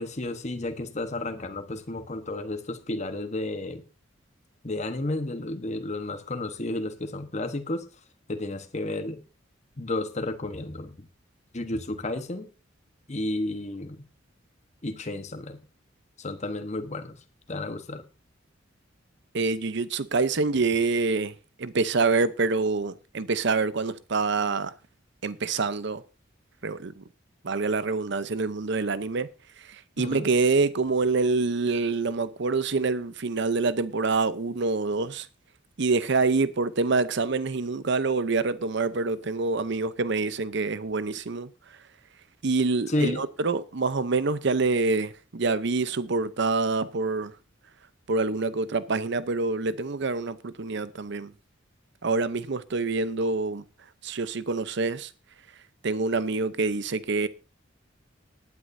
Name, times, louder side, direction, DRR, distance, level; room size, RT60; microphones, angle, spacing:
voice 1, 0.0-3.8 4.6-7.9 8.3-9.2 9.8-11.1 11.5-12.5 13.1-14.0 14.8-15.6 16.2-17.2 17.5-18.0 30.0-30.3 42.9-43.2, left 2 dB, 35° left, 1.2 m, -32 dB
voice 2, 19.3-24.7 25.2-26.0 26.6-27.0 27.4-29.3 29.6-35.3 35.8-41.8 42.4-47.3 48.1-51.3 52.0-53.6 54.0-55.1 55.8-57.3, right 3 dB, 60° right, 0.7 m, -26 dB
19.0 x 9.6 x 2.7 m
head